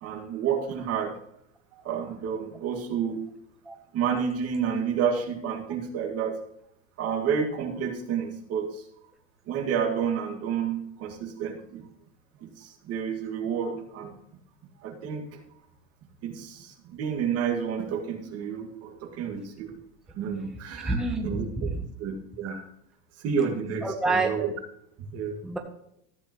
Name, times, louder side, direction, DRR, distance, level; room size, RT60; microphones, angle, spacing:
voice 1, 0.0-1.1 1.7-3.2 3.9-6.4 7.0-8.8 9.5-11.9 12.4-14.1 14.8-15.4 16.2-19.8 20.1-21.5 22.0-22.7 23.2-24.5 25.1-25.4, right 7 dB, 50° right, 4 dB, 2.0 m, -30 dB
voice 2, 20.8-21.8 23.8-24.3 25.4-25.6, right 3 dB, ahead, 3 dB, 0.8 m, -27 dB
13.5 x 8.6 x 3.0 m, 0.76 s
supercardioid pair, 135°, 33 cm